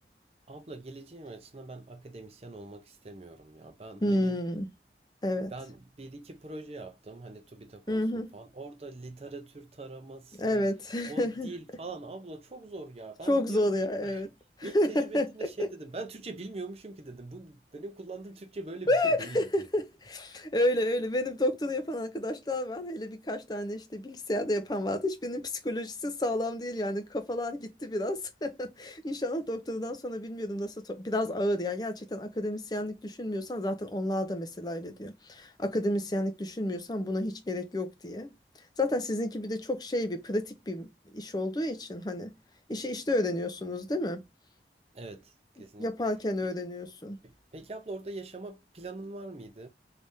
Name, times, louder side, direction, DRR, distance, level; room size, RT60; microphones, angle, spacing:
voice 1, 0.5-4.4 5.5-10.7 11.1-13.7 14.0-14.2 14.6-19.7 44.9-45.3 45.6-45.9 47.2-49.7, right 2 dB, 35° right, 0.6 m, -43 dB
voice 2, 4.0-4.7 5.2-5.5 7.9-8.3 10.4-11.5 13.3-14.3 14.6-15.7 18.9-38.3 38.8-42.3 42.7-44.2 45.8-47.2, left 1 dB, 20° left, 0.5 m, -30 dB
3.4 x 3.4 x 2.7 m
head